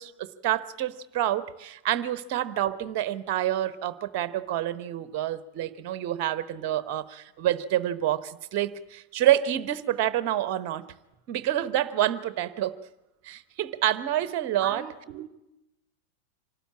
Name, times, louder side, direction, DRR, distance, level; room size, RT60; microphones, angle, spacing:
voice 1, 0.0-10.8 11.3-12.8 13.2-14.8, right 12 dB, 45° right, 16 dB, 0.9 m, -28 dB
voice 2, 14.6-15.3, right 10 dB, 25° right, 7 dB, 2.5 m, -38 dB
24.5 x 12.5 x 8.7 m, 0.94 s
figure-of-eight pair, 90°, 0 cm